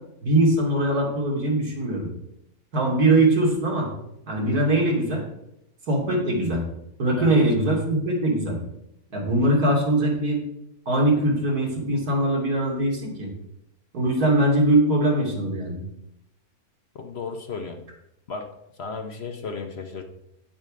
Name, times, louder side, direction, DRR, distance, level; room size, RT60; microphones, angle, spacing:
voice 1, 0.2-2.1 2.7-3.9 4.3-5.2 5.9-6.6 7.0-8.6 9.1-10.4 10.9-13.3 13.9-15.8, right 1 dB, 75° right, -2 dB, 3.1 m, -21 dB
voice 2, 16.9-17.8 18.3-18.5 18.8-20.0, left 4 dB, 50° left, 5 dB, 1.0 m, -34 dB
9.1 x 7.4 x 5.1 m, 0.83 s
omnidirectional pair, 1.6 m